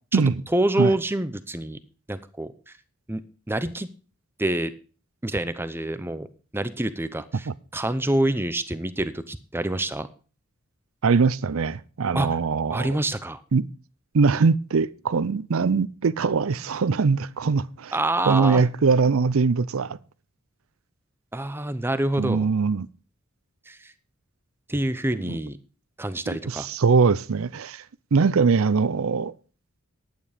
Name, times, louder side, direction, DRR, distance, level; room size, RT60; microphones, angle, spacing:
voice 1, 0.1-1.8 2.1-2.8 3.1-3.2 3.5-3.9 4.4-4.7 5.2-6.3 6.5-10.1 12.1-12.4 12.7-13.4 17.9-18.6 21.3-22.5 23.7-23.9 24.7-25.6 26.0-26.7, right 1 dB, 10° right, 0.7 m, -27 dB
voice 2, 11.0-13.0 13.5-13.7 14.1-17.9 18.3-20.0 22.2-22.9 25.3-25.4 26.3-27.8 28.1-29.3, right 4 dB, 75° right, 0.5 m, -22 dB
11.0 x 9.3 x 5.0 m
head